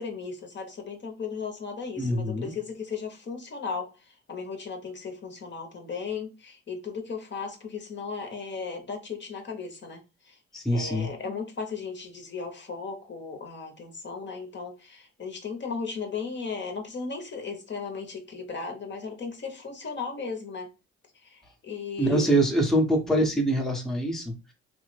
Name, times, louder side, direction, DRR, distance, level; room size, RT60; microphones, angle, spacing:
voice 1, 0.0-10.4 10.7-20.7 21.1-22.3, left 5 dB, 35° left, 0.8 m, -36 dB
voice 2, 2.0-2.5 10.5-11.1 22.0-24.5, right 1 dB, ahead, 0.7 m, -24 dB
3.1 x 2.1 x 3.1 m
cardioid pair, 90°, 30 cm